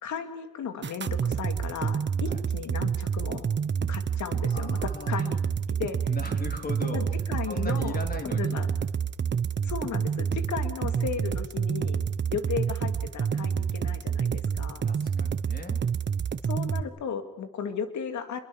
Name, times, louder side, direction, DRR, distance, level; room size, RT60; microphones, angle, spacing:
voice 1, 0.0-3.5 3.9-4.8 5.1-5.4 5.8-6.0 6.8-8.0 8.3-8.7 9.6-12.0 12.3-14.8 16.4-18.4, left 7 dB, 70° left, 8 dB, 2.9 m, -35 dB
sound 1, 0.8-16.8, right 7 dB, 35° right, 1.1 m, -28 dB
voice 2, 4.5-5.3 6.1-8.6 14.8-15.9, left 2 dB, 30° left, 5 dB, 3.5 m, -39 dB
27.5 x 22.0 x 7.4 m, 0.89 s
cardioid pair, 90°, 30 cm